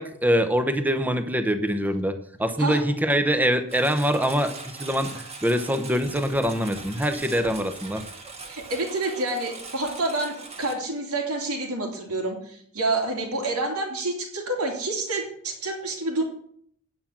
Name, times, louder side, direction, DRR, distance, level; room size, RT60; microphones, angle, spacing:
voice 1, 0.0-2.1 2.4-8.0, equal, 10° right, 9 dB, 0.8 m, -24 dB
Engine, 3.7-10.7, right 3 dB, 30° right, 1.6 m, -41 dB
voice 2, 8.5-16.2, right 2 dB, 85° right, 1 dB, 2.8 m, -28 dB
9.4 x 6.0 x 7.3 m, 0.64 s
head